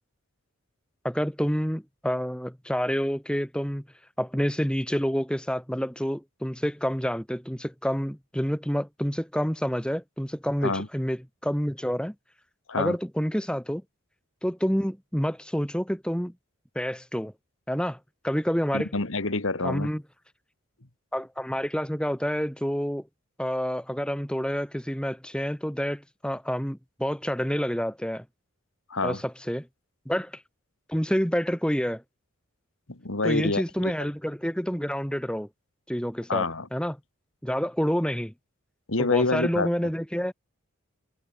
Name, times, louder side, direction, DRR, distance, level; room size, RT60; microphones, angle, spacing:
voice 1, 1.0-3.8 4.2-12.1 12.7-13.8 14.4-16.3 16.7-17.3 17.7-18.0 18.2-18.9 19.6-20.0 21.1-23.0 23.4-28.2 29.0-29.7 30.1-30.4 30.9-32.0 33.2-35.5 35.9-36.4 36.7-37.0 37.4-38.3 39.0-40.3, equal, 5° left, 2.6 m, -28 dB
voice 2, 18.7-19.9 28.9-29.2 32.9-33.9 36.3-36.7 38.9-39.7, left 3 dB, 70° left, 1.9 m, -27 dB
head